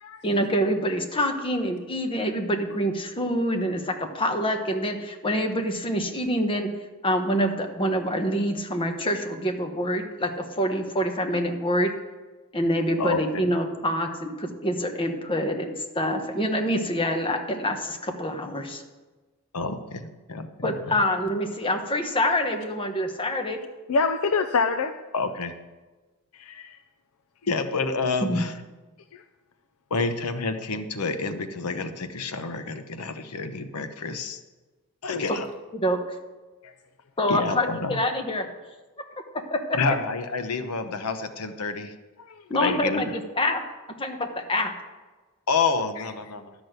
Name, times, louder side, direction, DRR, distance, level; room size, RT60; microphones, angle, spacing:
voice 1, 0.2-6.7 7.0-11.9 12.5-18.8 20.6-23.6 28.2-28.4 35.3-35.4 35.7-36.2 37.2-38.5 39.5-39.8 42.5-43.7 44.0-44.7, equal, 25° left, 4 dB, 1.1 m, -26 dB
voice 2, 13.0-13.4 19.5-21.0 25.1-25.5 27.5-28.5 29.9-34.4 35.0-35.5 37.3-38.0 39.7-41.9 42.6-43.2 45.5-46.5, left 4 dB, 90° left, 9 dB, 0.9 m, -29 dB
voice 3, 23.9-24.9 26.3-26.8 29.1-29.2 35.1-35.3 42.3-42.4, left 4 dB, 70° left, 9 dB, 0.5 m, -25 dB
12.0 x 6.2 x 8.0 m, 1.3 s
head